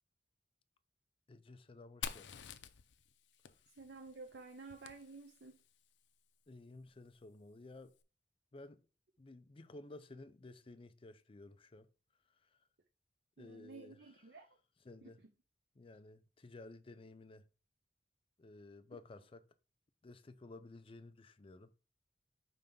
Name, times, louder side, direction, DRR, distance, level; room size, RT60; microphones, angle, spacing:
voice 1, 1.3-2.4 6.5-7.9 8.5-8.8 9.2-11.9 12.3-12.6 13.4-14.0 14.8-15.2 15.8-17.4 18.4-19.4 20.0-21.7, left 2 dB, 30° left, 0.5 m, -54 dB
Fire, 2.0-5.7, left 7 dB, 80° left, 0.5 m, -49 dB
voice 2, 3.8-5.6 13.4-14.5 15.0-15.1, right 3 dB, 70° right, 0.7 m, -52 dB
5.3 x 3.3 x 5.4 m
head